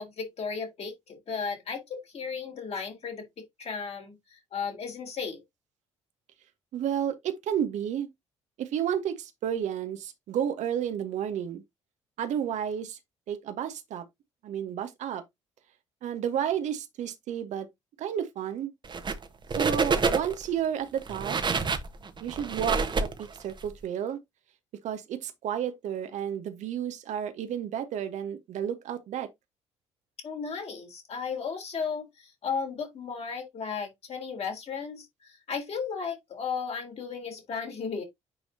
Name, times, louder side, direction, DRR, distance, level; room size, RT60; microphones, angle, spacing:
voice 1, 0.0-5.4 30.2-38.0, left 5 dB, 45° left, 3.4 m, -35 dB
voice 2, 6.7-8.1 8.6-11.6 12.2-13.0 13.3-14.1 14.4-15.2 16.0-17.7 18.0-18.7 19.6-21.4 22.2-24.2 24.8-29.3, right 9 dB, 50° right, 1.2 m, -31 dB
sound 1, 18.8-19.2 19.5-20.5 21.0-23.6, right 4 dB, 30° right, 1.3 m, -27 dB
9.6 x 4.8 x 2.7 m
figure-of-eight pair, 45°, 15 cm